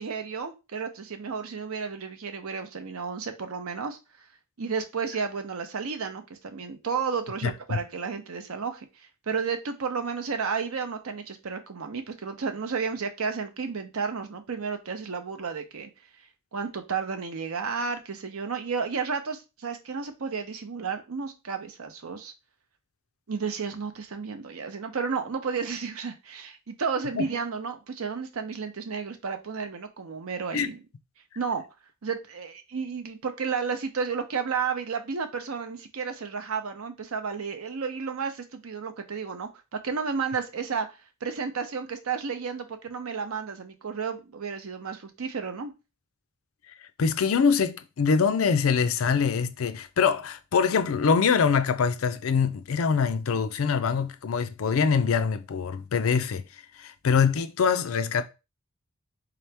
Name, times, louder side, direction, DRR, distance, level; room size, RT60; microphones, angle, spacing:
voice 1, 0.0-4.0 4.6-15.9 16.5-22.3 23.3-30.8 31.4-31.6 32.0-40.9 41.2-45.7, right 5 dB, 80° right, 0.7 m, -32 dB
voice 2, 7.4-7.8 27.1-27.3 30.5-30.7 47.0-56.4 56.8-58.2, left 6 dB, 70° left, 0.4 m, -24 dB
3.8 x 2.9 x 3.3 m
head